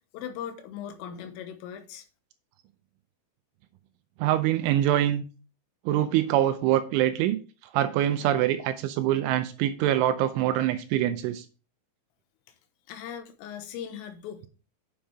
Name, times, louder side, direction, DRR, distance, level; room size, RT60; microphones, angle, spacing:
voice 1, 0.1-2.1 12.5-12.6 12.9-14.5, left 9 dB, 85° left, 3.6 m, -39 dB
voice 2, 4.2-5.2 5.9-7.4 7.7-11.4, right 12 dB, 80° right, 2.9 m, -24 dB
9.0 x 7.1 x 3.4 m
omnidirectional pair, 5.9 m